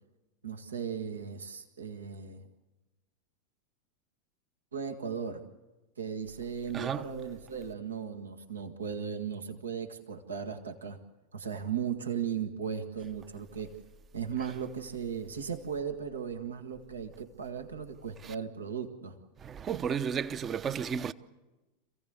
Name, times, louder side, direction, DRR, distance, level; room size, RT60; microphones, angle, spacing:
voice 1, 0.4-2.5 4.7-5.5 6.0-11.0 11.3-13.7 14.1-19.2, right 7 dB, 80° right, 1.6 m, -37 dB
voice 2, 6.7-7.1 18.2-18.3 19.4-21.1, right 7 dB, 30° right, 0.8 m, -33 dB
27.5 x 16.0 x 8.0 m
figure-of-eight pair, 85°, 0 cm